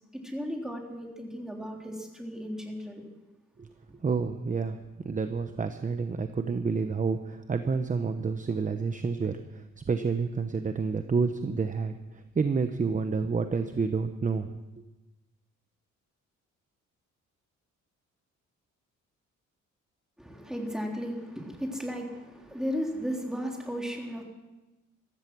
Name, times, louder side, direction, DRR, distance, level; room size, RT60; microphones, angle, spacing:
voice 1, 0.2-3.0 20.2-24.2, equal, ahead, 0 dB, 3.5 m, -35 dB
voice 2, 4.0-4.8 5.0-14.5, right 5 dB, 25° right, 8 dB, 0.9 m, -29 dB
15.0 x 14.5 x 6.2 m, 1.1 s
cardioid pair, 90°, 30 cm